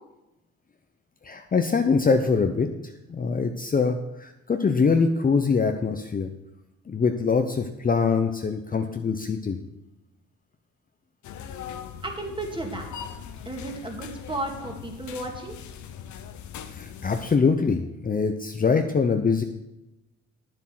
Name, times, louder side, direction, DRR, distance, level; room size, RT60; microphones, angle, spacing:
voice 1, 1.2-2.7 3.1-6.3 6.9-9.6 16.7-19.4, left 5 dB, 30° left, 6 dB, 0.7 m, -23 dB
sound 1, 11.2-17.4, left 8 dB, 70° left, 0.9 m, -40 dB
voice 2, 12.0-12.9 13.5-15.5, right 2 dB, 15° right, 2 dB, 2.3 m, -33 dB
9.8 x 7.5 x 6.0 m, 0.97 s
cardioid pair, 90°, 30 cm